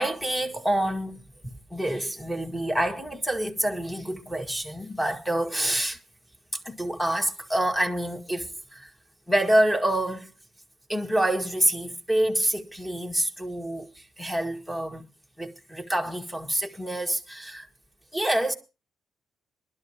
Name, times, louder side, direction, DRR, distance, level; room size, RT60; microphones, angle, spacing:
voice 1, 0.0-6.0 6.6-8.9 9.3-10.3 10.9-13.9 14.2-15.1 15.4-17.7 18.1-18.5, right 1 dB, 5° left, 1.9 m, -27 dB
21.5 x 12.0 x 3.0 m
cardioid pair, 90°, 0 cm